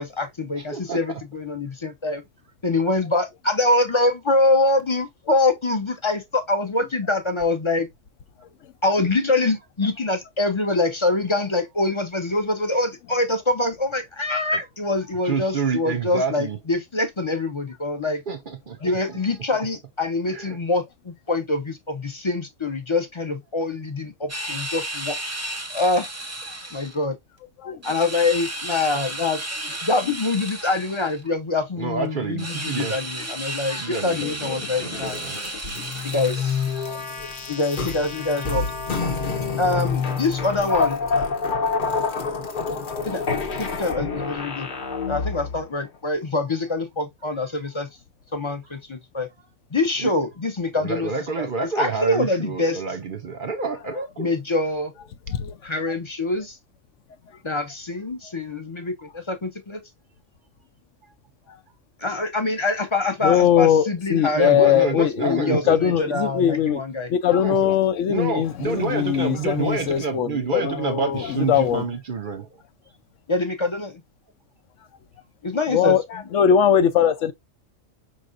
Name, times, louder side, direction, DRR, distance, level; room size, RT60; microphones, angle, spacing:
voice 1, 0.0-2.2 2.6-7.9 8.8-18.2 18.8-25.1 25.7-26.1 26.7-27.2 27.8-29.4 29.8-35.2 36.0-36.6 37.5-38.6 39.6-41.2 43.0-43.2 43.6-44.7 45.1-47.9 48.3-49.3 49.7-51.1 51.4-51.5 51.8-52.8 54.2-54.9 55.6-56.6 57.4-59.8 62.0-67.1 73.3-74.0 75.4-76.2, left 2 dB, 30° left, 0.6 m, -24 dB
voice 2, 0.5-1.2 15.2-16.6 18.3-18.8 19.1-19.2 20.3-20.6 31.8-32.9 33.8-35.4 50.0-50.1 50.8-54.3 64.3-66.0 67.4-67.7 68.0-72.5, right 5 dB, 50° right, 0.8 m, -28 dB
sound 1, 24.3-27.0 27.8-31.2 32.4-37.0, right 1 dB, 20° right, 0.5 m, -33 dB
sound 2, 34.4-45.7, left 4 dB, 45° left, 0.9 m, -27 dB
voice 3, 63.2-66.8 67.1-71.8 75.7-77.3, left 9 dB, 75° left, 1.0 m, -20 dB
5.2 x 3.2 x 2.5 m
omnidirectional pair, 1.3 m